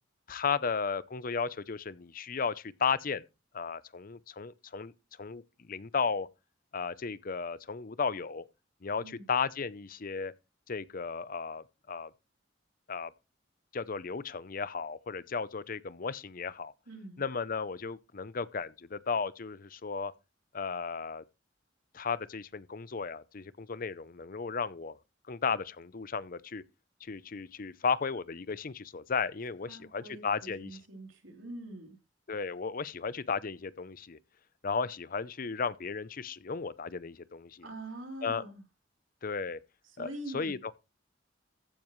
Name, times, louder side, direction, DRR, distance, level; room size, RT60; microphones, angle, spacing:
voice 1, 0.3-3.2 3.5-4.9 5.2-6.3 6.7-8.4 8.8-10.3 10.7-12.1 12.9-13.1 13.7-16.7 17.2-20.1 20.5-21.2 21.9-25.0 25.3-26.6 27.0-30.8 32.3-34.2 34.6-37.6 38.2-38.4 39.2-39.6 40.0-40.6, left 5 dB, 45° left, 0.6 m, -34 dB
voice 2, 16.9-17.2 29.7-32.0 37.6-38.6 39.8-40.6, right 1 dB, 80° right, 3.4 m, -44 dB
14.5 x 9.6 x 3.2 m
head